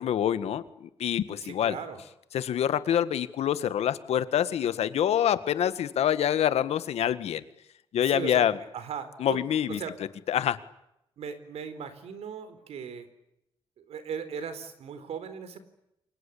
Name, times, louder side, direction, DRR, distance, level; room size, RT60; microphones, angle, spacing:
voice 1, 0.0-1.8 2.3-7.4 7.9-8.6 9.2-9.8 10.3-10.6, left 10 dB, 85° left, 13 dB, 1.8 m, -26 dB
voice 2, 1.4-2.0 8.0-9.4 9.8-10.0 11.2-13.1 13.8-15.6, right 6 dB, 85° right, 12 dB, 4.2 m, -38 dB
29.0 x 23.0 x 8.6 m, 0.83 s
wide cardioid pair, 140°, 10 cm